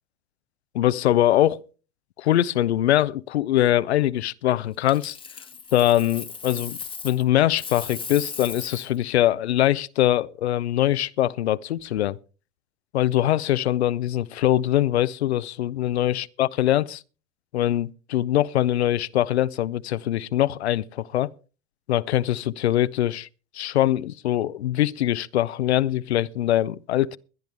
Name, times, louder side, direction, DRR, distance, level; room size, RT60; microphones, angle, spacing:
voice 1, 0.7-1.6 2.2-5.2 5.7-6.8 7.0-12.2 12.9-17.0 17.5-21.3 21.9-23.3 23.5-27.2, left 13 dB, 85° left, 0.6 m, -22 dB
Coin (dropping), 4.9-7.2 7.5-9.0 11.8-12.0, left 5 dB, 15° left, 1.1 m, -37 dB
21.5 x 10.5 x 3.4 m
hypercardioid pair, 90°, 32 cm